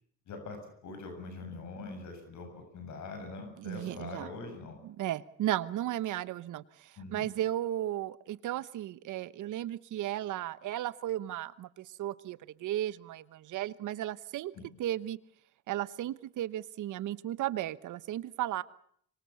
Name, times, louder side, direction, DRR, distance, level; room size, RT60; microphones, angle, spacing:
voice 1, 0.3-0.6 0.8-4.8 7.0-7.3 14.5-14.7, left 3 dB, 70° left, 5 dB, 7.4 m, -43 dB
voice 2, 3.6-4.3 4.8-14.5 14.8-15.2 15.7-18.6, right 13 dB, 80° right, 16 dB, 1.1 m, -35 dB
25.5 x 23.5 x 7.1 m, 0.65 s
cardioid pair, 90°, 30 cm